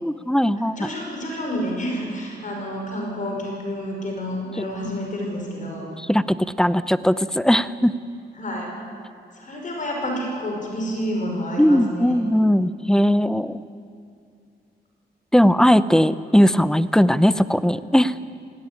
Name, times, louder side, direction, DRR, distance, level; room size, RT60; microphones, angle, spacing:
voice 1, 0.0-0.9 4.6-4.7 6.0-7.9 11.6-13.6 15.3-18.1, equal, 5° left, 15 dB, 0.6 m, -19 dB
voice 2, 0.6-5.9 8.4-8.7 9.4-12.2, equal, 45° left, 0 dB, 5.4 m, -29 dB
18.5 x 16.5 x 9.7 m, 2.4 s
cardioid pair, 100°, 18 cm